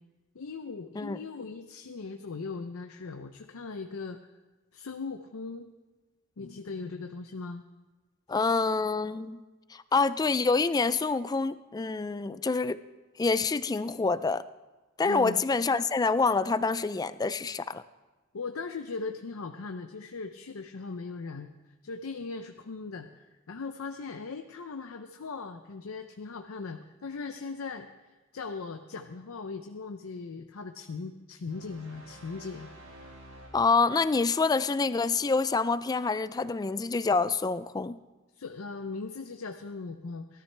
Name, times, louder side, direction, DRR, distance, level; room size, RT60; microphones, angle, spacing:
voice 1, 0.3-4.2 4.7-5.7 6.4-7.6 15.0-15.4 18.3-21.5 21.8-27.9 28.3-32.7 38.3-40.4, left 4 dB, 80° left, 6 dB, 0.6 m, -39 dB
voice 2, 8.3-9.4 9.7-12.8 13.2-14.4 15.0-17.8 33.5-38.0, left 4 dB, 20° left, 14 dB, 0.3 m, -27 dB
sound 1, 31.5-34.2, right 1 dB, 65° right, 2.2 m, -51 dB
18.0 x 13.0 x 3.3 m, 1.2 s
head